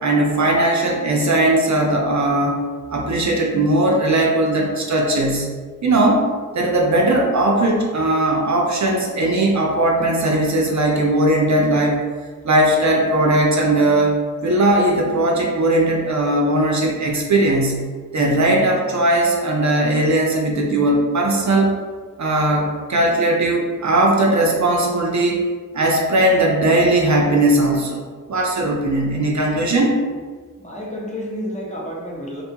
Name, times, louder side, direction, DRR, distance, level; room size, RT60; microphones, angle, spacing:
voice 1, 0.0-2.6 2.9-5.5 5.8-6.3 6.5-12.0 12.4-17.9 18.1-21.7 22.2-25.4 25.7-28.0 28.3-30.0, right 1 dB, 50° right, 0 dB, 0.5 m, -18 dB
voice 2, 30.6-32.4, equal, 20° left, -3 dB, 0.6 m, -30 dB
2.6 x 2.2 x 2.8 m, 1.5 s
cardioid pair, 50°, 37 cm